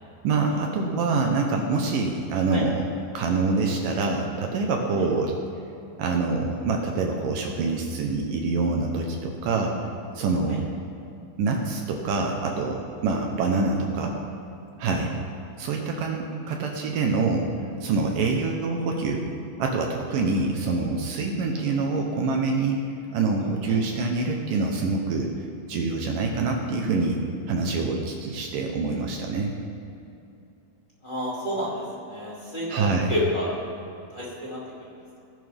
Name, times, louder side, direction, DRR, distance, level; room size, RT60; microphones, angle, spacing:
voice 1, 0.2-2.9 3.1-5.4 6.0-9.8 10.2-10.6 11.4-14.2 14.8-15.2 15.6-17.5 17.8-19.3 19.6-22.8 23.1-27.2 27.5-29.6 32.7-33.1, right 3 dB, 75° right, 2 dB, 2.0 m, -25 dB
voice 2, 31.0-33.5 34.1-34.9, left 1 dB, 15° left, -7 dB, 1.8 m, -30 dB
19.5 x 11.0 x 3.5 m, 2.7 s
omnidirectional pair, 5.0 m